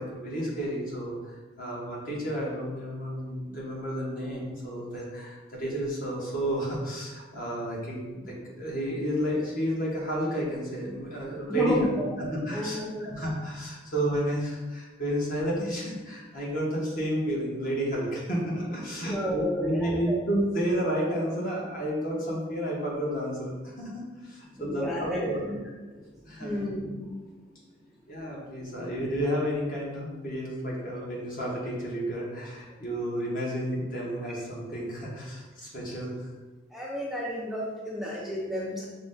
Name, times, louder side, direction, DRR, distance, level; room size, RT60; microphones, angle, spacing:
voice 1, 0.0-11.8 12.2-25.4 26.2-26.5 28.1-36.3, equal, 45° left, -4 dB, 1.2 m, -31 dB
voice 2, 11.5-12.1 12.5-13.1 19.1-20.2 24.5-25.6 25.9-26.0 26.4-27.2 36.7-38.9, equal, ahead, -5 dB, 0.4 m, -31 dB
5.9 x 2.2 x 3.7 m, 1.2 s
head